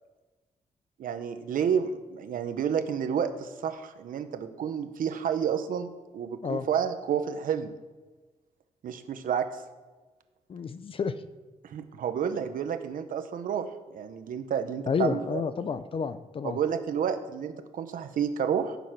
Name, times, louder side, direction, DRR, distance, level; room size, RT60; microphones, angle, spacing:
voice 1, 1.0-7.7 8.8-9.5 11.6-15.4 16.4-18.8, right 8 dB, 75° right, 9 dB, 1.0 m, -30 dB
voice 2, 10.5-11.1 14.9-16.6, left 6 dB, 40° left, 12 dB, 0.6 m, -30 dB
14.5 x 7.2 x 6.0 m, 1.3 s
wide cardioid pair, 165°, 14 cm